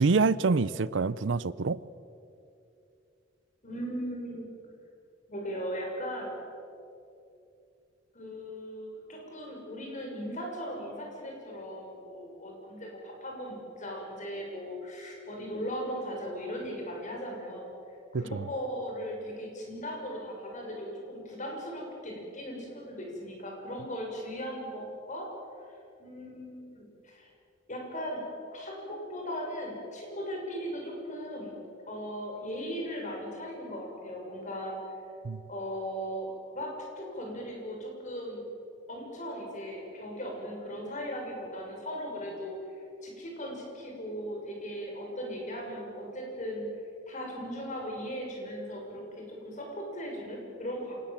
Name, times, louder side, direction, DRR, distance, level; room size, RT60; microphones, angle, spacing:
voice 1, 0.0-1.8 18.1-18.4 35.2-35.4, right 4 dB, 70° right, 0.6 m, -26 dB
voice 2, 3.6-4.5 5.3-6.3 8.1-17.7 18.1-25.3 26.0-27.3 27.7-28.2 28.5-31.5 31.9-34.8 35.5-38.4 38.9-42.6 43.0-46.7 47.1-51.0, equal, 40° left, 6.5 m, -38 dB
27.0 x 19.0 x 7.5 m
head